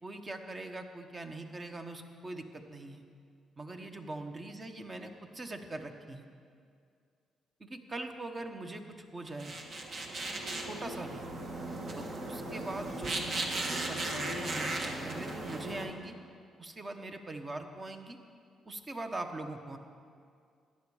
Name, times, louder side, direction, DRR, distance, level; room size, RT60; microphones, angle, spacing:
voice 1, 0.0-3.0 3.6-6.3 7.6-9.5 10.6-11.2 12.0-16.2 16.6-18.2 18.7-19.8, right 2 dB, 30° right, 5 dB, 1.1 m, -42 dB
sound 1, 9.3-15.9, right 2 dB, 50° right, 1.5 m, -37 dB
14.0 x 10.0 x 4.9 m, 2.2 s
cardioid pair, 90°, 0 cm